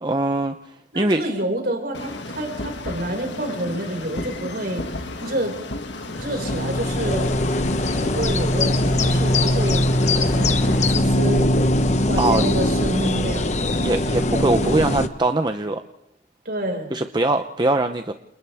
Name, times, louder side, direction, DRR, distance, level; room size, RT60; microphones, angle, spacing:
voice 1, 0.0-1.2 12.2-12.4 13.8-15.8 16.9-18.1, right 2 dB, 25° right, 7 dB, 0.8 m, -22 dB
voice 2, 0.9-4.9 5.2-5.6 6.0-7.4 8.0-9.8 10.3-11.5 12.1-13.6 16.5-16.9, right 1 dB, 55° right, 2 dB, 5.6 m, -28 dB
sound 1, 1.9-10.9, left 2 dB, 70° left, 2.1 m, -33 dB
sound 2, 6.1-15.1, left 1 dB, 40° left, 1.1 m, -21 dB
30.0 x 29.0 x 3.6 m, 0.76 s
head